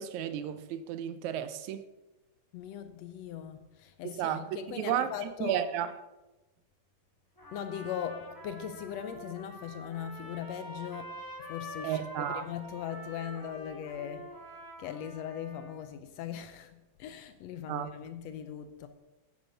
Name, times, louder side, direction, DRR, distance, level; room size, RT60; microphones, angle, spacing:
voice 1, 0.0-1.8 4.0-5.1 5.4-5.9 11.8-12.4 17.7-17.9, right 10 dB, 80° right, 12 dB, 2.0 m, -33 dB
voice 2, 2.5-5.7 7.5-14.3 14.8-18.9, left 9 dB, 75° left, 10 dB, 1.7 m, -40 dB
Trumpet, 7.4-15.9, equal, 15° left, 0.6 m, -46 dB
10.5 x 8.9 x 5.6 m, 1.1 s
omnidirectional pair, 3.4 m